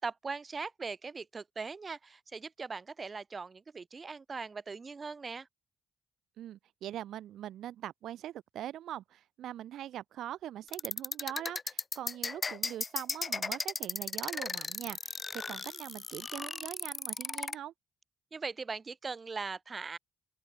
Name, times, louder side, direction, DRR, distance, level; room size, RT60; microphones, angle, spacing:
voice 1, 0.0-5.5 18.3-20.0, right 4 dB, 30° right, 3.1 m, -40 dB
voice 2, 6.4-17.7, right 12 dB, 75° right, 4.2 m, -42 dB
sound 1, 10.7-17.6, left 4 dB, 30° left, 1.8 m, -35 dB
open air
cardioid pair, 90°, 0 cm